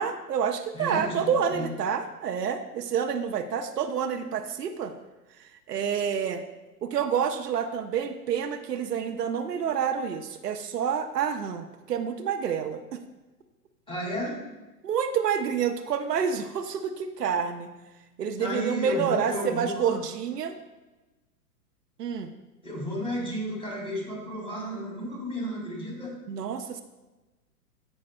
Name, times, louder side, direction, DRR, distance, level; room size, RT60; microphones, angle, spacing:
voice 1, 0.0-4.9 5.7-6.4 6.8-13.0 14.8-17.7 18.2-20.5 22.0-22.3 26.3-26.8, right 7 dB, 75° right, 6 dB, 0.8 m, -28 dB
voice 2, 0.7-1.7 13.9-14.4 18.4-20.0 22.6-26.1, equal, 10° left, -2 dB, 2.3 m, -33 dB
15.0 x 5.6 x 2.2 m, 1.1 s
hypercardioid pair, 115°, 48 cm